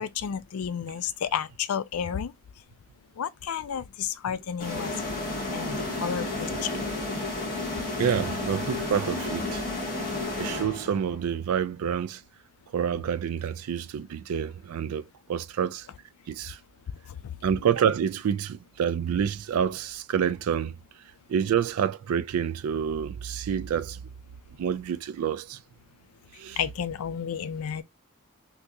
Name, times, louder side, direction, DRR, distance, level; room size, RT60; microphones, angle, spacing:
voice 1, 0.0-2.3 3.2-5.1 5.5-6.8 17.2-17.3 26.6-27.8, left 8 dB, 80° left, 0.4 m, -31 dB
sound 1, 4.6-11.2, left 2 dB, 40° left, 1.4 m, -32 dB
voice 2, 8.0-9.6 10.4-12.2 12.7-15.9 16.3-16.6 17.4-20.7 21.3-24.0 24.6-25.6 26.4-26.6, right 8 dB, 80° right, 0.3 m, -28 dB
3.5 x 2.7 x 2.5 m
head